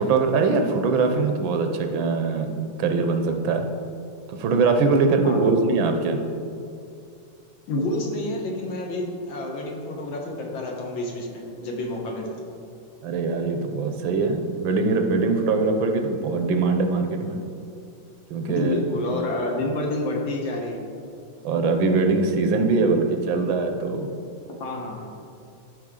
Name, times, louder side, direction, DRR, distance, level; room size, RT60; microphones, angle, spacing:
voice 1, 0.0-3.6 4.3-6.2 13.0-17.4 18.3-18.7 19.0-19.1 21.4-24.1, right 4 dB, 80° right, 5 dB, 1.6 m, -22 dB
voice 2, 5.2-5.8 7.7-12.5 18.5-20.8 24.6-25.1, left 1 dB, 80° left, 0 dB, 2.0 m, -29 dB
14.0 x 5.2 x 3.8 m, 2.5 s
omnidirectional pair, 2.1 m